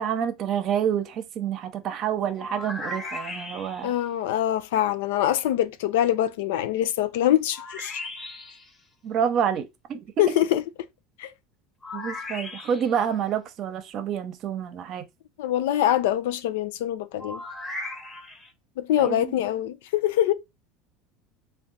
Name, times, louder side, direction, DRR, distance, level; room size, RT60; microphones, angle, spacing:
voice 1, 0.0-3.9 9.0-10.4 11.9-15.0 18.9-19.3, right 8 dB, 50° right, 0.8 m, -28 dB
sound 1, 2.4-4.0 7.5-8.7 11.8-13.0 17.2-18.5, left 2 dB, 20° left, 1.0 m, -37 dB
voice 2, 3.8-8.0 10.2-10.6 11.2-11.3 15.4-17.4 18.8-20.3, left 12 dB, 85° left, 0.4 m, -24 dB
3.6 x 2.4 x 3.9 m
supercardioid pair, 115°, 0 cm